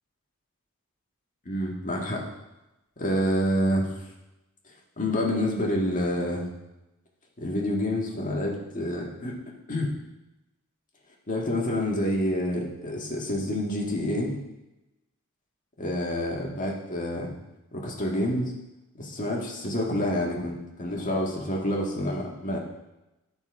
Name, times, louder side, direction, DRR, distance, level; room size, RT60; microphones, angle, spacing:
voice 1, 1.4-2.2 3.0-3.9 5.0-6.5 7.4-9.9 11.3-14.3 15.8-17.3 17.7-18.5 18.9-22.6, left 1 dB, 40° left, -2 dB, 1.7 m, -28 dB
12.5 x 4.4 x 4.8 m, 0.97 s
head